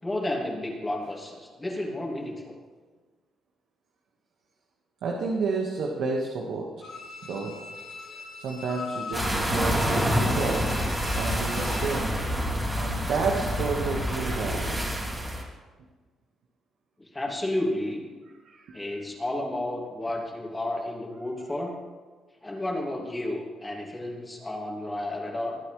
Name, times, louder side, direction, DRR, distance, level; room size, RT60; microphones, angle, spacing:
voice 1, 0.0-2.6 17.0-18.1 18.7-21.7 22.4-25.6, left 1 dB, 15° left, -1 dB, 2.6 m, -32 dB
voice 2, 5.0-6.6 7.2-7.5 8.1-10.6 11.1-12.1 12.7-14.7 18.4-18.9, right 4 dB, 75° right, -1 dB, 1.6 m, -30 dB
Bowed string instrument, 6.8-12.0 12.4-12.5, left 4 dB, 80° left, 2.4 m, -41 dB
sound 1, 9.1-15.4, equal, 15° right, 3.0 m, -27 dB
20.5 x 9.4 x 3.3 m, 1.4 s
cardioid pair, 90°, 0 cm